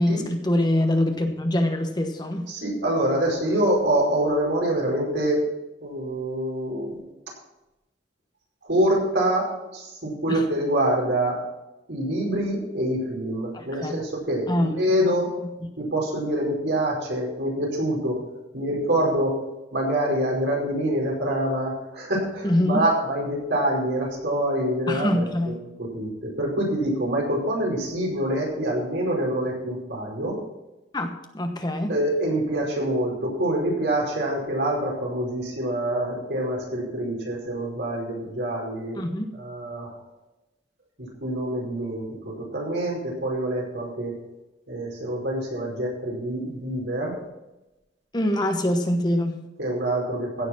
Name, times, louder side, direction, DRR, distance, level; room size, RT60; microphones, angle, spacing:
voice 1, 0.0-2.5 10.3-10.4 13.5-14.0 14.5-14.7 22.4-22.8 24.9-25.6 30.9-31.9 39.0-39.4 48.1-49.4, left 1 dB, 25° left, 5 dB, 1.1 m, -24 dB
voice 2, 2.5-5.4 5.8-7.0 8.6-11.4 11.9-15.3 15.8-19.4 19.7-30.4 31.9-39.0 39.3-39.9 41.0-44.1 44.7-47.1 49.6-50.5, right 1 dB, 75° right, -2 dB, 4.9 m, -26 dB
16.0 x 6.9 x 6.0 m, 0.98 s
head